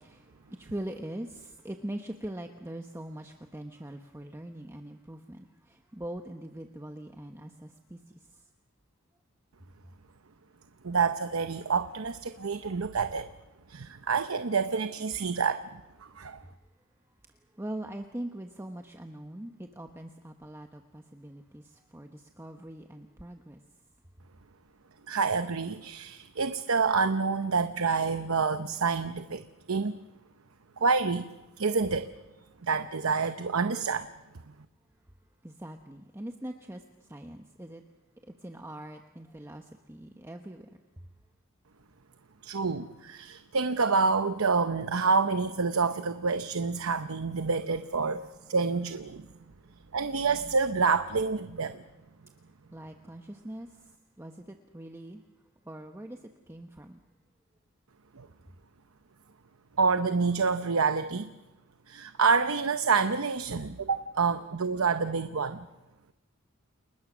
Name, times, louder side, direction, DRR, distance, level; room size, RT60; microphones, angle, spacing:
voice 1, 0.0-8.2 17.6-23.6 35.4-37.8 38.3-41.1 52.7-53.7 54.2-55.2 55.6-56.2 56.5-57.0, right 1 dB, 15° right, 1.0 m, -42 dB
voice 2, 10.8-13.3 13.7-15.7 16.0-16.4 25.1-29.4 29.7-30.0 30.8-31.3 31.6-32.1 32.6-34.1 42.4-49.2 49.9-51.8 58.2-58.3 59.8-61.3 61.9-65.7, right 4 dB, 85° right, 0.8 m, -28 dB
30.0 x 20.5 x 6.2 m
head